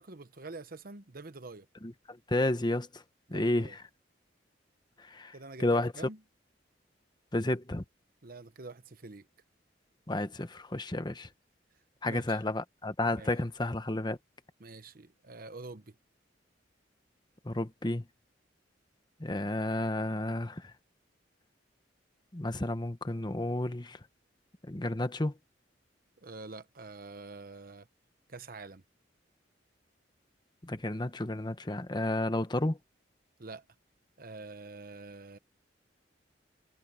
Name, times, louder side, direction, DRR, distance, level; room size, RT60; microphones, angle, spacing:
voice 1, 0.0-1.7 3.3-3.7 5.3-6.2 8.2-9.3 12.0-12.4 13.2-13.3 14.6-15.9 26.2-27.9 28.3-28.8 33.4-33.6 34.2-35.4, right 3 dB, 50° right, 1.0 m, -46 dB
voice 2, 1.8-3.0 3.3-3.8 5.0-5.9 7.3-7.8 10.1-11.3 12.0-14.2 17.4-18.0 19.2-20.7 22.3-24.0 24.7-25.3 30.6-32.8, left 1 dB, 25° left, 1.1 m, -31 dB
head